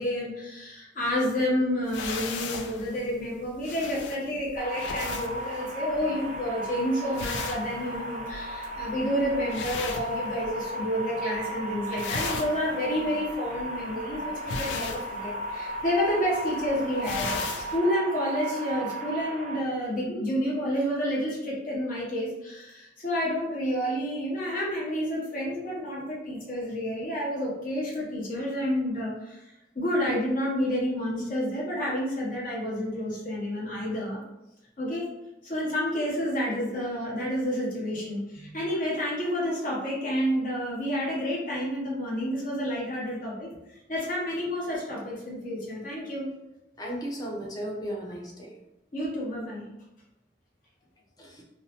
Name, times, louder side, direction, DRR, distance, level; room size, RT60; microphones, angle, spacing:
voice 1, 0.0-29.4 29.7-34.2 34.8-35.1 35.4-43.5 43.9-46.3 48.9-49.7, equal, 45° left, -4 dB, 0.8 m, -29 dB
sound 1, 1.9-10.8 11.1-11.6 11.8-17.8, left 4 dB, 80° left, 0.3 m, -37 dB
sound 2, 4.6-19.6, right 1 dB, 40° right, 0.3 m, -35 dB
voice 2, 46.8-48.5 51.2-51.4, equal, 20° left, -2 dB, 0.5 m, -35 dB
2.5 x 2.0 x 2.8 m, 0.93 s
head